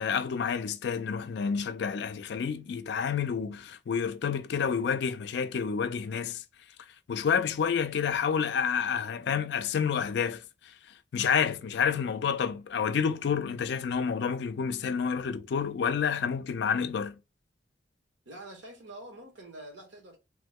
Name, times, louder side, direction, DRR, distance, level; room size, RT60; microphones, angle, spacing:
voice 1, 0.0-6.4 7.1-10.7 11.1-17.2, left 6 dB, 60° left, 0.3 m, -29 dB
voice 2, 18.2-20.2, right 1 dB, 75° right, 1.1 m, -46 dB
3.0 x 2.0 x 3.5 m
head